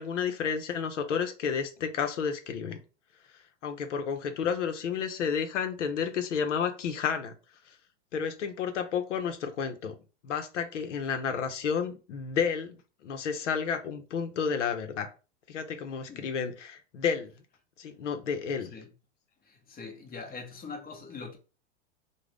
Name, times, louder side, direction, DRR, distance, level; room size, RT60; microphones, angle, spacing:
voice 1, 0.0-2.8 3.3-7.3 7.7-7.8 8.1-9.9 10.2-15.1 15.5-17.3 17.8-18.7, left 6 dB, 90° left, 0.6 m, -31 dB
voice 2, 18.6-18.9 19.4-21.4, left 4 dB, 25° left, 0.8 m, -43 dB
3.6 x 2.1 x 3.3 m
hypercardioid pair, 105°, 35 cm